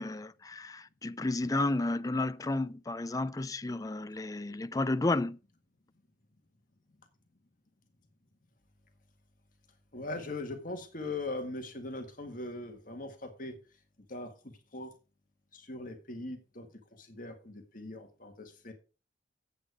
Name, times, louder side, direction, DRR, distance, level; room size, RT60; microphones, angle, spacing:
voice 1, 0.0-5.4, left 2 dB, 20° left, 0.5 m, -32 dB
voice 2, 9.9-13.6 14.1-14.3 14.7-14.9 15.5-18.7, left 2 dB, 50° left, 1.8 m, -40 dB
9.3 x 8.3 x 4.8 m
head